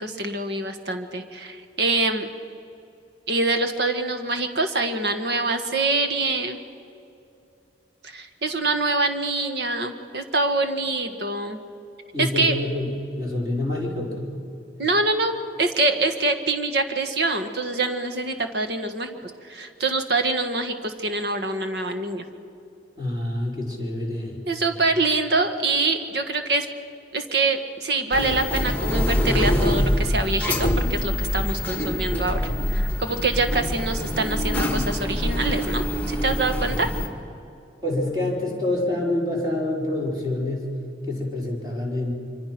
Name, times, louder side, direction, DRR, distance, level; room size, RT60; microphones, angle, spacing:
voice 1, 0.0-2.3 3.3-6.6 8.0-11.6 12.2-12.5 14.8-15.3 15.6-22.2 24.5-26.7 27.1-36.9, right 3 dB, 60° right, 7 dB, 1.6 m, -25 dB
voice 2, 12.1-14.3 23.0-24.4 37.8-40.7 41.1-42.1, left 1 dB, 20° right, -2 dB, 4.5 m, -27 dB
sound 1, 28.1-37.1, left 1 dB, 10° left, 1.6 m, -25 dB
25.5 x 24.5 x 6.0 m, 2.7 s
head